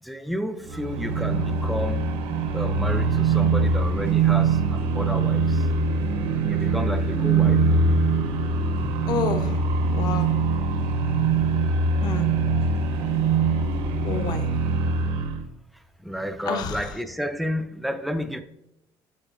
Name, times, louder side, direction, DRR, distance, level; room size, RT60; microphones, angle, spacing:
voice 1, 0.0-2.1 2.5-5.7 6.4-7.6 16.0-18.4, equal, ahead, 8 dB, 0.3 m, -31 dB
sound 1, 0.7-15.4, right 4 dB, 75° right, 0.8 m, -23 dB
voice 2, 9.1-9.6 9.9-10.3 12.0-12.3 14.0-14.5 16.5-16.8, left 6 dB, 45° left, 8 dB, 0.6 m, -29 dB
9.8 x 5.5 x 2.5 m, 0.87 s
cardioid pair, 175°, 10 cm